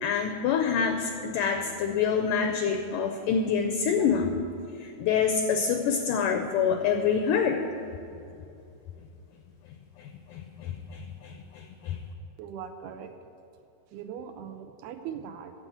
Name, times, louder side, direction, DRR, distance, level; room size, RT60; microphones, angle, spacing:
voice 1, 0.0-4.4 4.8-7.6 10.0-12.0, left 6 dB, 85° left, 5 dB, 1.8 m, -27 dB
voice 2, 12.4-13.1 13.9-15.7, right 8 dB, 85° right, 7 dB, 2.6 m, -40 dB
10.0 x 7.7 x 7.7 m, 2.7 s
omnidirectional pair, 4.5 m